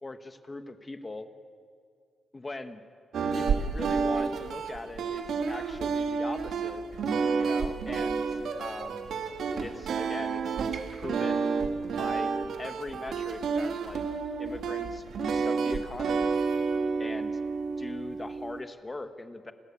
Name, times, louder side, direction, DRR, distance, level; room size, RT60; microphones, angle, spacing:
voice 1, 0.0-1.3 2.3-2.8 3.3-6.8 7.3-9.1 9.6-11.5 12.0-14.0 14.4-16.4 17.0-17.3 17.8-19.5, left 2 dB, 15° left, 9 dB, 1.0 m, -41 dB
sound 1, 3.1-18.6, right 5 dB, 70° right, 1.4 m, -30 dB
30.0 x 13.5 x 8.5 m, 2.2 s
wide cardioid pair, 170°, 0 cm